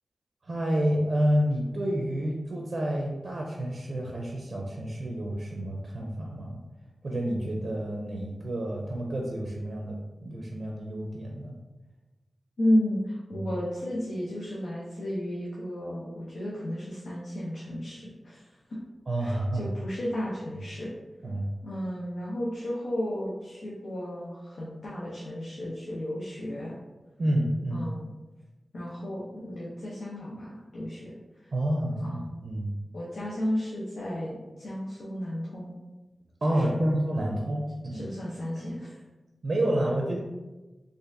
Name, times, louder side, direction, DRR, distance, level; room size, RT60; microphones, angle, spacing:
voice 1, 0.4-6.6 7.0-11.6 13.3-13.5 19.1-19.6 21.2-21.5 27.2-27.9 31.5-32.7 36.4-38.1 38.6-38.7 39.4-40.2, right 1 dB, 60° right, -1 dB, 0.5 m, -29 dB
voice 2, 12.6-18.8 19.2-20.9 21.6-26.7 27.7-28.1 28.7-31.5 32.0-32.3 32.9-35.7 36.5-37.0 37.9-39.0, equal, 80° left, -6 dB, 0.7 m, -33 dB
4.1 x 2.5 x 2.6 m, 1.1 s
wide cardioid pair, 80°, 0 cm